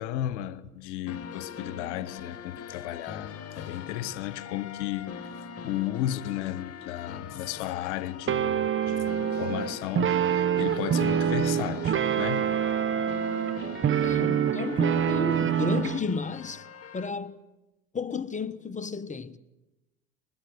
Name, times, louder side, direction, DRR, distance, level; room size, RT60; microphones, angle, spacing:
voice 1, 0.0-5.3 5.6-12.5, left 13 dB, 80° left, 1.1 m, -34 dB
sound 1, 1.1-17.1, left 7 dB, 45° left, 2.1 m, -42 dB
sound 2, 8.3-16.0, right 9 dB, 35° right, 1.0 m, -26 dB
voice 2, 14.0-16.7 16.9-17.3 17.9-19.4, left 4 dB, 20° left, 1.2 m, -32 dB
24.5 x 21.0 x 7.9 m
hypercardioid pair, 75°, 34 cm